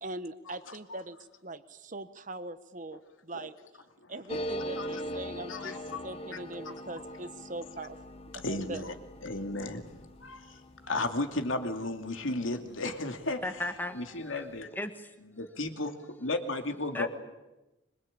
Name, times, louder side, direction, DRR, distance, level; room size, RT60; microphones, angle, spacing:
voice 1, 0.0-1.2 1.4-3.5 4.1-8.0 8.5-8.9, right 2 dB, 40° right, 1.2 m, -41 dB
sound 1, 4.3-13.4 13.7-13.8 14.0-14.6, equal, 30° left, 1.2 m, -42 dB
voice 2, 5.5-6.0 6.6-6.7 8.4-8.9 9.2-9.9 10.2-13.4 14.0-14.7 15.4-17.1, left 2 dB, 90° left, 2.6 m, -34 dB
voice 3, 13.4-14.4 14.7-15.4 16.9-17.1, left 1 dB, 10° left, 1.6 m, -37 dB
25.0 x 22.0 x 8.9 m
head